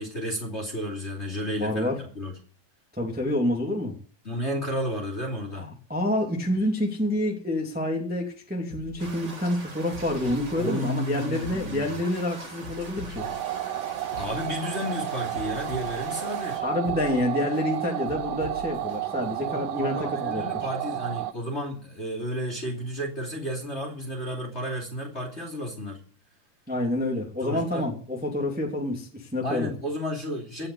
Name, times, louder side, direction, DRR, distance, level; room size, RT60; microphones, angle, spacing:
voice 1, 0.0-1.9 2.1-2.3 4.2-5.7 10.6-12.0 14.2-16.6 19.5-26.0 27.4-27.9 29.4-30.7, equal, 20° left, 1 dB, 2.6 m, -32 dB
voice 2, 1.6-2.0 2.9-3.9 5.5-13.3 16.6-20.4 26.7-29.7, left 1 dB, 5° right, 1 dB, 2.1 m, -28 dB
sound 1, 8.7-9.5 9.9-10.8 11.3-12.2 12.6-13.5 14.0-14.9 15.3-16.3 16.7-17.6 18.1-19.0 19.4-19.5, left 3 dB, 85° left, 4.1 m, -42 dB
Ambience Rain Heavy A, 9.0-16.6, right 3 dB, 30° right, 1.7 m, -42 dB
sound 2, 13.2-21.3, right 13 dB, 80° right, 2.4 m, -32 dB
17.5 x 5.9 x 9.5 m, 0.43 s
omnidirectional pair, 3.8 m